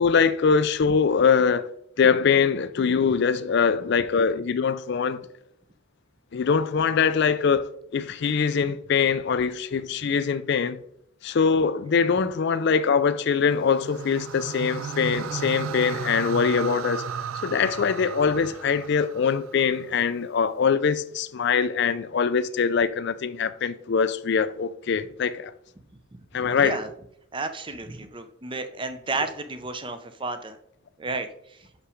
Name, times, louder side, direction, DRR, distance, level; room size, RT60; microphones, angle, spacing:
voice 1, 0.0-1.7 2.0-5.2 6.3-10.8 11.2-17.0 17.4-25.5 26.3-26.8, left 6 dB, 55° left, 0.4 m, -23 dB
sound 1, 13.5-19.8, right 6 dB, 75° right, 0.4 m, -34 dB
voice 2, 26.4-26.9 27.3-30.6 31.0-31.6, right 3 dB, 25° right, 0.6 m, -32 dB
6.1 x 5.6 x 5.0 m
head